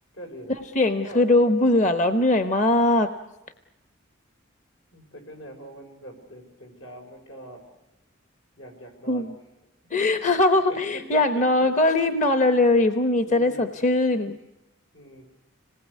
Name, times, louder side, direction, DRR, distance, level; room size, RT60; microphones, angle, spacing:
voice 1, 0.1-0.6 1.0-1.2 4.9-7.7 8.6-9.3 9.9-10.1 10.7-11.4 13.3-13.7 14.9-15.3, equal, 85° left, 2 dB, 5.7 m, -42 dB
voice 2, 0.7-3.1 9.1-9.3 9.9-14.4, left 2 dB, 40° left, 9 dB, 0.9 m, -21 dB
26.5 x 19.5 x 8.3 m, 0.97 s
head